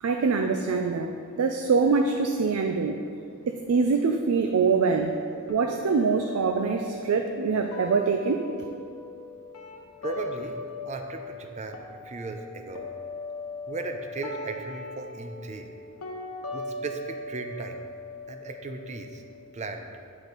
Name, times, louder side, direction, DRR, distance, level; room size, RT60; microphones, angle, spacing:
voice 1, 0.0-3.1 3.5-5.2 5.5-8.5, right 4 dB, 85° right, 5 dB, 0.4 m, -24 dB
sound 1, 5.5-11.5 11.7-19.5, left 2 dB, 85° left, 0.8 m, -39 dB
voice 2, 10.0-10.6 10.9-12.9 13.7-15.7 16.5-17.9 18.3-19.2 19.5-19.9, right 3 dB, 35° right, 5 dB, 0.5 m, -36 dB
9.0 x 4.8 x 3.9 m, 2.4 s
head